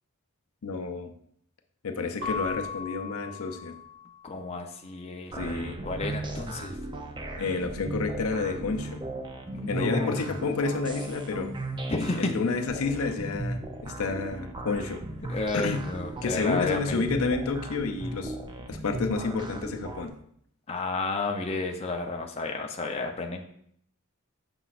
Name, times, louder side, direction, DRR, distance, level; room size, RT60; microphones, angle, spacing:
voice 1, 0.6-1.1 1.8-3.8 5.3-5.8 7.4-9.0 9.7-11.5 12.2-15.0 15.5-15.9 16.2-18.4 18.7-20.1, left 4 dB, 75° left, 5 dB, 0.6 m, -30 dB
Keyboard (musical) / Bell, 2.2-4.6, left 4 dB, 70° right, 2.7 m, -38 dB
voice 2, 4.2-5.3 5.8-6.8 9.5-10.3 11.9-12.4 15.3-17.0 20.7-23.4, left 3 dB, 30° left, 2 dB, 0.6 m, -31 dB
sound 1, 5.3-20.1, right 2 dB, 20° right, 0.5 m, -37 dB
6.8 x 5.9 x 2.5 m, 0.68 s
head